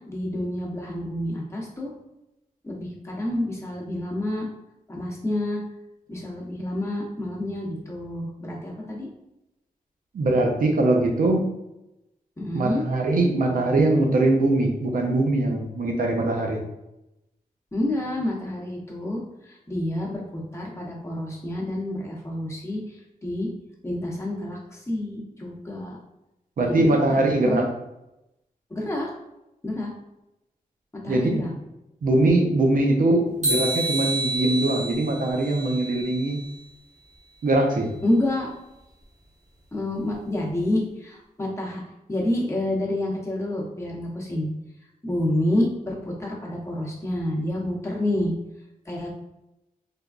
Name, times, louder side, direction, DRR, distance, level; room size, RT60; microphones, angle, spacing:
voice 1, 0.1-1.9 2.6-4.5 4.9-5.6 6.1-9.1 12.4-12.8 17.7-23.5 23.8-26.0 26.7-26.8 27.1-27.7 28.7-29.1 29.6-29.9 30.9-31.5 38.0-38.5 39.7-41.8 42.1-44.5 45.0-48.3 48.9-49.1, left 1 dB, 20° left, -3 dB, 0.9 m, -28 dB
voice 2, 10.1-11.4 12.5-16.6 26.6-27.7 31.1-31.5 32.0-36.4 37.4-37.9, right 2 dB, 75° right, 2 dB, 0.6 m, -22 dB
sound 1, 33.4-36.5, right 2 dB, 55° right, 1.2 m, -29 dB
3.3 x 2.2 x 2.4 m, 0.91 s
cardioid pair, 65°, 15 cm